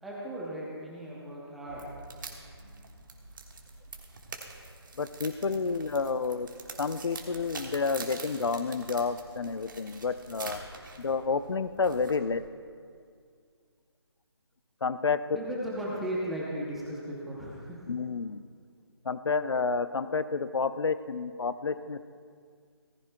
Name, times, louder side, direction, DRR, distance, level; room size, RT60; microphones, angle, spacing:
voice 1, 0.0-2.0 15.3-17.9, right 1 dB, ahead, -6 dB, 0.6 m, -36 dB
sound 1, 1.7-12.5, right 3 dB, 45° right, 1.4 m, -45 dB
voice 2, 5.0-6.5 6.8-10.6 11.0-12.4 14.8-15.2 17.9-18.4 19.0-22.2, left 4 dB, 75° left, 12 dB, 0.6 m, -30 dB
17.5 x 15.0 x 2.2 m, 2.1 s
figure-of-eight pair, 170°, 14 cm